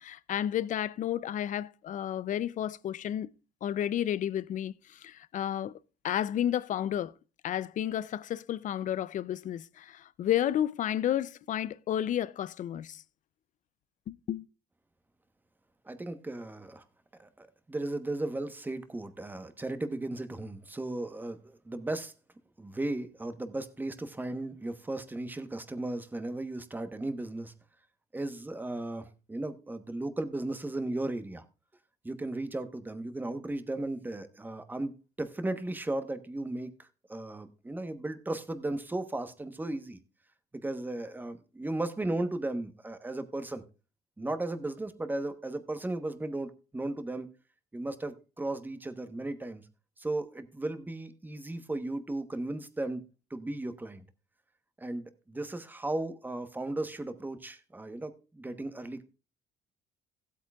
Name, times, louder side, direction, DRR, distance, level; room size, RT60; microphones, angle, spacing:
voice 1, 0.0-3.3 3.6-5.8 6.0-7.1 7.4-13.0 14.1-14.5, left 11 dB, 50° left, 0.5 m, -32 dB
voice 2, 15.9-16.8 17.2-22.1 22.6-27.5 28.1-31.4 32.0-34.9 35.2-40.0 40.6-43.6 44.2-47.3 47.7-49.6 50.0-54.0 54.8-59.0, right 2 dB, 10° right, 1.0 m, -36 dB
16.0 x 8.4 x 2.3 m
cardioid pair, 110°, 17 cm